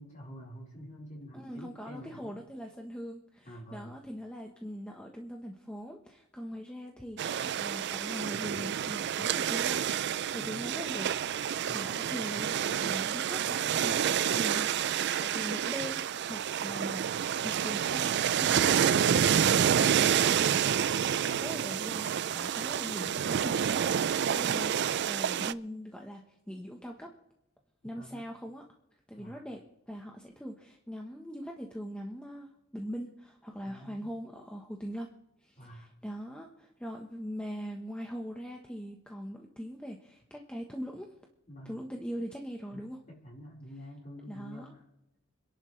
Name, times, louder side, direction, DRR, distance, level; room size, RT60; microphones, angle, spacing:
voice 1, 0.0-2.4 3.5-4.0 10.4-10.7 11.7-11.8 21.2-21.5 27.8-28.3 29.2-29.4 33.6-34.1 35.6-35.9 41.5-41.8 42.7-44.8, equal, 40° left, -4 dB, 4.6 m, -48 dB
voice 2, 1.3-9.9 10.3-11.1 11.5-17.1 17.4-20.7 21.4-23.8 24.2-26.2 26.5-27.1 27.8-28.6 29.1-35.1 35.4-41.2 41.6-43.0 44.3-44.7, equal, 5° left, 1 dB, 1.1 m, -41 dB
sound 1, 7.2-25.5, right 9 dB, 55° right, 0.4 m, -28 dB
26.5 x 11.0 x 3.3 m, 0.90 s
head